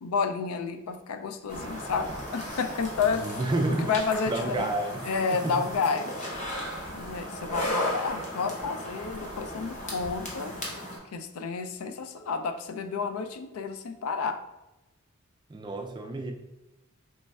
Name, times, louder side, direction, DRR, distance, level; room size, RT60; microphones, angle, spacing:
voice 1, 0.0-3.3 3.8-4.7 5.0-6.1 6.9-10.6 11.1-14.4, left 5 dB, 80° left, 8 dB, 0.4 m, -30 dB
sound 1, 1.5-11.0, equal, 35° left, 0.8 m, -36 dB
voice 2, 3.2-4.0 4.3-5.1 5.3-5.7 15.5-16.3, right 2 dB, 20° right, 3 dB, 0.3 m, -30 dB
4.2 x 3.1 x 2.3 m, 0.98 s
head